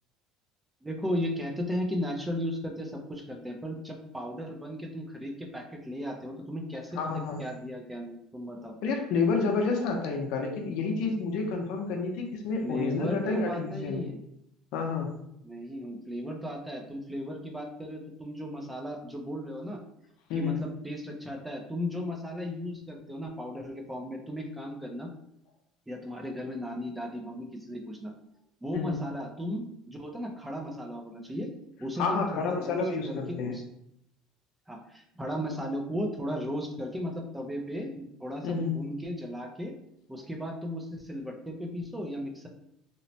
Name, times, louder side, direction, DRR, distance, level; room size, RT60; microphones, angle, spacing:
voice 1, 0.8-8.7 12.6-14.2 15.4-19.8 20.3-25.1 25.9-28.1 28.6-31.5 31.8-33.6 34.7-39.7 40.1-42.5, equal, 5° right, 2 dB, 0.4 m, -35 dB
voice 2, 7.0-7.4 8.8-14.0 14.7-15.1 20.3-20.6 28.7-29.0 32.0-33.6 38.4-38.7, left 4 dB, 70° left, 3 dB, 0.5 m, -29 dB
2.9 x 2.0 x 2.7 m, 0.77 s
cardioid pair, 140°, 0 cm